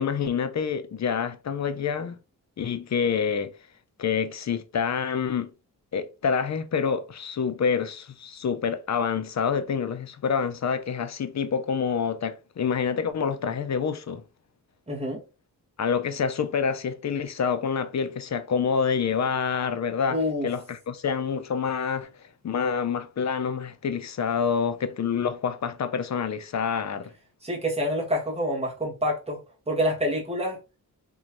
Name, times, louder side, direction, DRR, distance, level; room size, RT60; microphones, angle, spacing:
voice 1, 0.0-2.2 2.6-3.5 4.0-5.5 5.9-14.2 15.8-22.1 22.4-27.1, left 6 dB, 50° left, 0.5 m, -27 dB
voice 2, 14.9-15.2 20.1-20.5 27.4-29.4 29.7-30.6, equal, 15° right, 1.4 m, -27 dB
3.7 x 3.0 x 2.9 m
wide cardioid pair, 155°, 35 cm